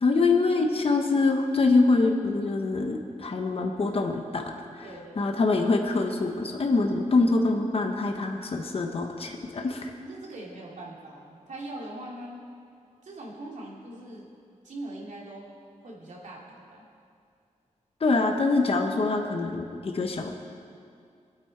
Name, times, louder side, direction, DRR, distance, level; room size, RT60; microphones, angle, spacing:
voice 1, 0.0-4.4 4.7-4.9 5.2-9.9 18.0-20.3, left 3 dB, 50° left, 3 dB, 1.1 m, -24 dB
voice 2, 4.8-5.3 10.0-12.4 13.0-14.3 14.6-15.5 15.8-16.9, right 1 dB, 70° right, -3 dB, 2.8 m, -41 dB
22.5 x 8.6 x 4.6 m, 2.4 s
wide cardioid pair, 110°, 13 cm